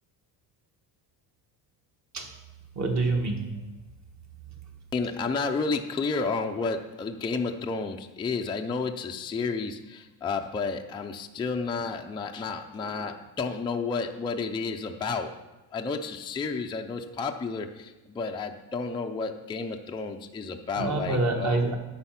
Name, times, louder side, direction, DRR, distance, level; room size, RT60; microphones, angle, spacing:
voice 1, 2.7-3.5 20.8-21.7, right 3 dB, 40° right, 2 dB, 1.6 m, -26 dB
voice 2, 4.9-15.4 15.7-21.6, left 4 dB, 10° left, 3 dB, 0.4 m, -31 dB
9.8 x 6.8 x 5.8 m, 1.1 s
cardioid pair, 150°, 42 cm